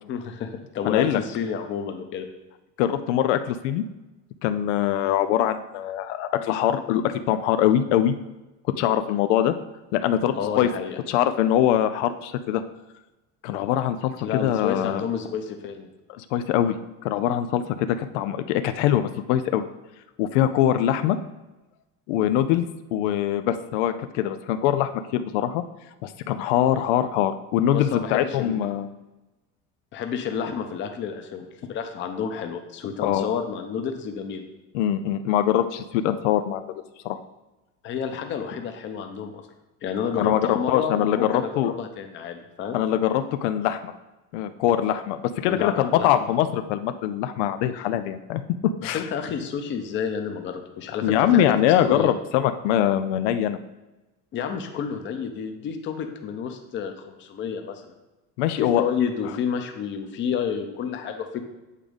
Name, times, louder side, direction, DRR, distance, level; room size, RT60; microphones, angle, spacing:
voice 1, 0.1-2.3 10.3-11.0 14.2-15.9 27.7-28.7 29.9-34.5 37.8-39.4 39.8-42.8 45.5-46.3 48.9-51.5 51.8-52.1 54.3-57.9 58.6-61.4, left 7 dB, 35° left, 6 dB, 0.8 m, -30 dB
voice 2, 0.8-1.2 2.8-3.8 4.4-8.2 8.8-9.5 9.9-10.7 11.1-12.6 13.4-15.0 16.1-16.8 17.0-19.6 20.2-21.2 22.1-22.6 22.9-25.6 26.0-28.9 33.0-33.3 34.7-36.7 37.0-37.2 40.1-41.7 42.7-43.9 44.3-48.4 48.8-49.0 51.0-53.6 58.4-58.8, left 11 dB, 90° left, 10 dB, 0.5 m, -23 dB
8.3 x 3.6 x 5.1 m, 1.1 s
cardioid pair, 155°, 35 cm